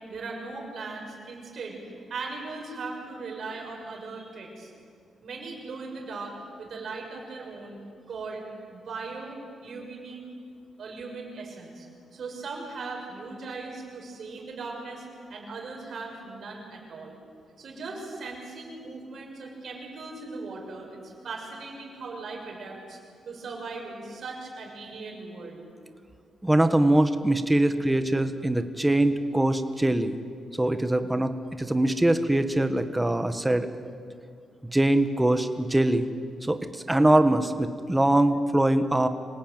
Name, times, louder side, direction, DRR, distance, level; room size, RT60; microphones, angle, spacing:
voice 1, 0.1-1.8 2.1-4.7 5.2-7.8 8.1-8.4 8.7-10.2 10.8-11.9 12.1-15.0 15.3-17.2 17.6-23.0 23.2-25.6, right 3 dB, 55° right, 0 dB, 6.5 m, -38 dB
voice 2, 26.4-30.2 30.5-33.7 34.7-36.1 36.4-39.1, right 1 dB, 10° right, 9 dB, 1.3 m, -23 dB
26.0 x 18.5 x 9.2 m, 2.2 s
cardioid pair, 130°, 0 cm